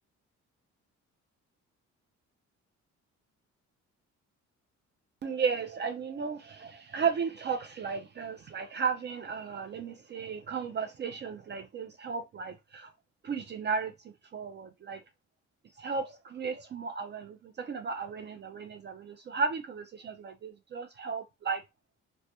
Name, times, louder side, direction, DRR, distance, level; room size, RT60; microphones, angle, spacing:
voice 1, 5.2-12.9 13.2-13.9 14.3-15.0 15.8-21.6, right 5 dB, 35° right, 0.4 m, -34 dB
2.1 x 2.1 x 2.7 m
cardioid pair, 90°, 30 cm